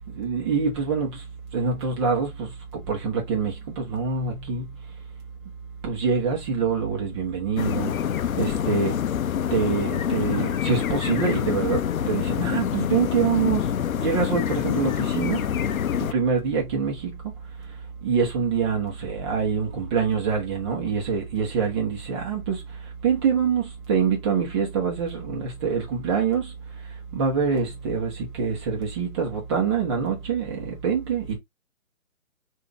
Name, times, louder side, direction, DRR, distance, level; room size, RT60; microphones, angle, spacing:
voice 1, 0.1-1.2 1.5-4.7 5.8-8.0 8.4-9.0 9.5-13.7 14.0-15.5 16.0-17.2 17.6-17.7 18.0-26.5 27.1-31.4, right 6 dB, 20° right, 1.1 m, -25 dB
sound 1, 7.6-16.1, left 9 dB, 75° left, 0.6 m, -26 dB
3.6 x 2.7 x 3.4 m
hypercardioid pair, 150°, 42 cm